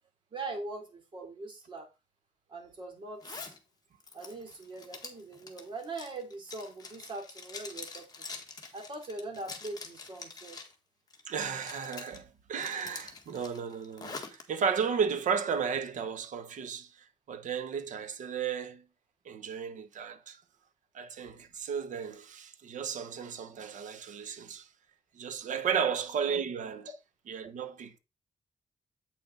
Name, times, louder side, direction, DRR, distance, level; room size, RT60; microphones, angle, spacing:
voice 1, 0.3-1.9 2.5-3.5 4.1-8.0 8.7-10.6 25.7-25.9, right 2 dB, 40° right, 3.1 m, -41 dB
Zipper (clothing), 3.2-3.6 4.0-10.7 11.1-12.2 12.6-14.4, left 4 dB, 30° left, 1.6 m, -45 dB
voice 2, 11.3-18.8 19.2-20.4 20.9-24.7 25.1-26.9 27.3-28.0, right 7 dB, 85° right, 1.0 m, -34 dB
8.6 x 6.0 x 3.9 m
wide cardioid pair, 160°, 13 cm